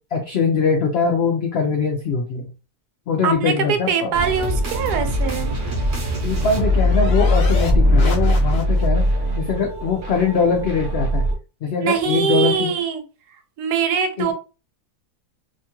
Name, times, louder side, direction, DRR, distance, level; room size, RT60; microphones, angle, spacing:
voice 1, 0.1-2.5 3.1-4.1 6.2-9.1 9.4-11.3 11.6-12.7 14.2-14.3, left 5 dB, 85° left, 2 dB, 0.5 m, -22 dB
voice 2, 3.2-5.5 11.8-13.0 13.6-14.3, right 7 dB, 90° right, 7 dB, 1.2 m, -22 dB
sound 1, 4.1-11.4, left 1 dB, 55° right, 0.8 m, -21 dB
sound 2, 5.8-9.1, left 1 dB, 55° left, 1.0 m, -29 dB
2.9 x 2.3 x 2.8 m, 0.33 s
omnidirectional pair, 1.7 m